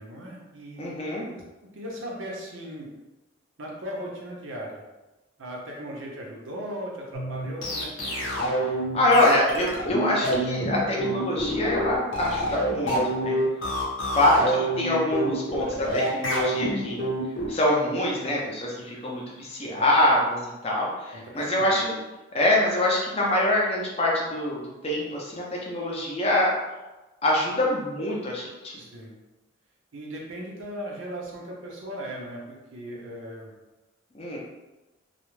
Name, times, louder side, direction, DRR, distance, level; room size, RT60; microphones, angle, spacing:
voice 1, 0.0-0.9 1.3-1.4 1.7-2.9 3.6-4.8 5.4-8.3 13.6-13.8 19.7-19.9 21.1-21.7 28.8-29.2 29.9-33.5, equal, 80° right, -2 dB, 0.6 m, -38 dB
voice 2, 0.8-1.3 8.7-13.4 14.1-17.0 17.5-22.0 22.3-26.5 27.2-28.7 34.1-34.4, left 1 dB, 30° left, -3 dB, 0.5 m, -25 dB
sound 1, 7.1-17.5, right 1 dB, 80° left, 0.7 m, -27 dB
2.3 x 2.0 x 3.0 m, 1.1 s
head